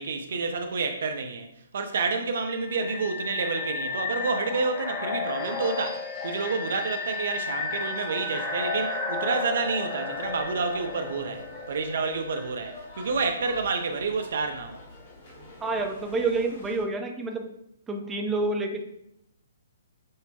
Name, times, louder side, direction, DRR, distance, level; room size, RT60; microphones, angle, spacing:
voice 1, 0.0-1.5 1.7-14.8, right 4 dB, 60° right, 5 dB, 0.5 m, -29 dB
sound 1, 2.5-13.3, left 4 dB, 25° left, 0.7 m, -33 dB
sound 2, 10.1-16.9, left 1 dB, 50° left, 1.3 m, -47 dB
voice 2, 15.6-17.4 17.9-18.8, right 3 dB, 10° right, 3 dB, 0.5 m, -28 dB
6.2 x 2.2 x 2.8 m, 0.80 s
figure-of-eight pair, 130°, 0 cm